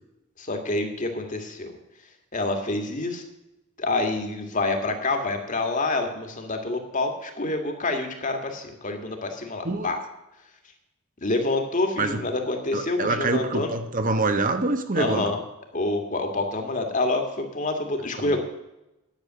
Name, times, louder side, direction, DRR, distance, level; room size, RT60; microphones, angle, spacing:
voice 1, 0.4-1.7 2.3-3.2 3.8-10.0 11.2-13.7 15.0-15.4 15.7-18.4, left 2 dB, 40° left, 5 dB, 1.9 m, -27 dB
voice 2, 12.7-15.3 18.2-18.4, right 2 dB, 40° right, 8 dB, 1.0 m, -25 dB
10.5 x 6.9 x 9.2 m, 0.93 s
head